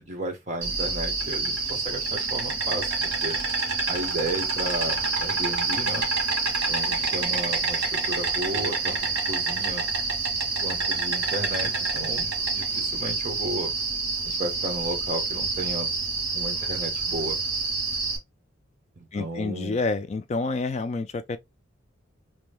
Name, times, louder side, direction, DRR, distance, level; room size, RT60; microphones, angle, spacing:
voice 1, 0.0-3.4 3.9-6.1 6.7-9.8 10.6-13.7 14.2-15.9 16.3-17.4 19.0-19.8, right 1 dB, 35° right, 1.1 m, -34 dB
Insect, 0.6-18.2, right 4 dB, 60° right, 1.5 m, -27 dB
voice 2, 19.1-21.4, left 3 dB, 35° left, 0.3 m, -28 dB
3.0 x 2.6 x 3.3 m
head